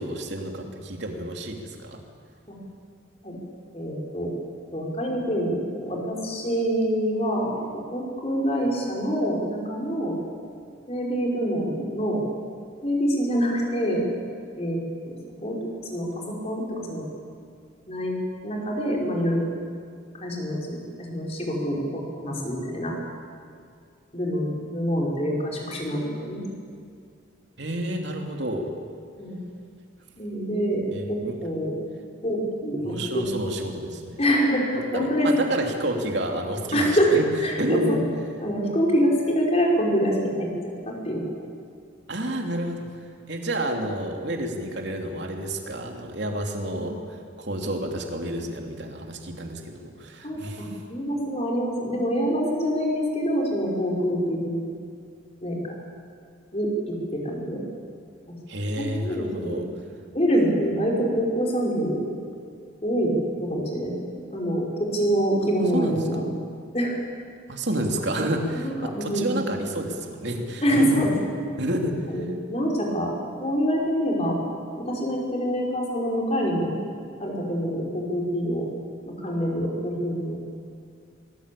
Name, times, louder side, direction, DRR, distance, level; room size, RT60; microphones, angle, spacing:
voice 1, 0.0-2.0 27.6-28.7 30.9-31.3 32.8-34.2 34.9-37.3 37.6-38.0 42.1-42.9 43.3-47.0 47.4-50.7 58.5-59.7 65.7-66.0 67.5-71.0 71.6-72.0, right 1 dB, 60° right, 2 dB, 3.1 m, -29 dB
voice 2, 3.7-4.3 4.7-7.5 7.9-10.1 10.9-12.2 12.8-14.0 14.6-14.8 15.0-15.1 15.4-17.1 17.9-18.2 18.4-19.4 20.2-23.0 24.1-26.4 29.2-29.4 30.2-31.7 32.2-33.3 34.2-35.3 36.7-37.1 37.4-38.0 38.4-40.5 40.8-41.5 46.7-46.9 50.2-54.6 55.4-55.7 56.5-57.6 58.8-59.6 60.1-62.0 62.8-66.3 66.7-67.0 68.5-69.4 70.6-71.1 72.1-74.4 74.8-76.7 77.2-78.7 79.0-80.4, equal, 30° left, -2 dB, 5.0 m, -26 dB
24.0 x 20.5 x 8.5 m, 2.2 s
head